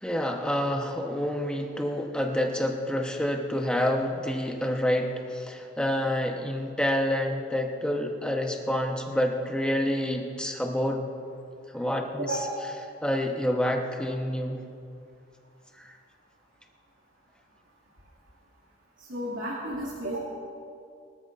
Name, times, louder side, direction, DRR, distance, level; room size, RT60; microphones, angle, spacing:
voice 1, 0.0-11.1 11.7-12.3 13.0-14.6 15.8-16.0, left 1 dB, 5° left, 1 dB, 1.1 m, -28 dB
voice 2, 12.2-12.7 19.0-20.2, right 1 dB, 85° right, -7 dB, 2.7 m, -32 dB
23.5 x 14.0 x 2.6 m, 2.4 s
head